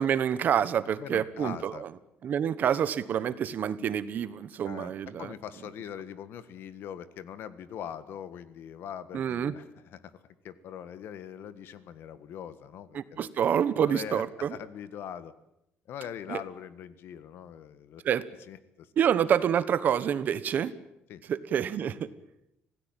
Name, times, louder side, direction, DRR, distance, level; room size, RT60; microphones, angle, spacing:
voice 1, 0.0-1.9 2.2-5.3 9.1-9.5 12.9-14.5 16.3-16.4 18.0-18.2 19.0-20.7 21.3-22.1, right 8 dB, 45° right, 15 dB, 1.2 m, -27 dB
voice 2, 1.0-1.8 4.6-4.9 5.2-10.1 10.4-13.3 13.8-14.2 14.5-15.3 15.9-18.0 18.5-18.9 19.2-19.3 21.1-21.2, left 9 dB, 60° left, 14 dB, 1.6 m, -42 dB
26.0 x 17.5 x 9.1 m, 0.83 s
cardioid pair, 165°, 4 cm